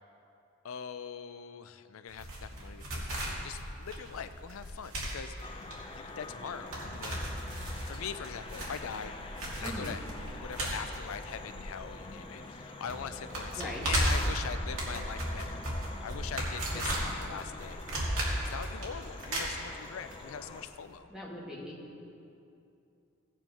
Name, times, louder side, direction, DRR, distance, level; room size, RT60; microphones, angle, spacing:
voice 1, 0.6-5.3 5.9-7.3 7.9-9.1 9.6-10.0 10.4-15.6 16.0-17.8 18.4-21.1, left 7 dB, 80° left, 11 dB, 0.5 m, -42 dB
sound 1, 2.1-12.2 12.4-12.5 12.9-20.2 20.4-20.5, right 1 dB, 80° right, 2.5 m, -35 dB
sound 2, 5.4-20.7, left 2 dB, 25° left, 0.6 m, -46 dB
voice 2, 9.6-9.9 13.6-13.9 16.7-16.8 21.1-21.8, left 1 dB, 5° right, -6 dB, 1.8 m, -41 dB
16.5 x 9.1 x 3.0 m, 2.7 s
head